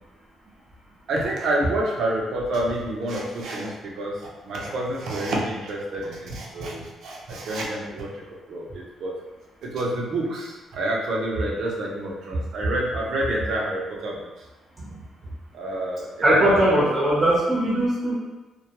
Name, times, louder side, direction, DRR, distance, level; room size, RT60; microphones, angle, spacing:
voice 1, 1.1-4.2 4.4-8.1 8.5-9.1 9.6-14.2 15.5-16.8, right 1 dB, 75° right, -3 dB, 0.6 m, -28 dB
voice 2, 16.2-18.2, right 1 dB, 25° right, -6 dB, 0.7 m, -19 dB
2.2 x 2.2 x 2.8 m, 1.1 s
cardioid pair, 90°, 0 cm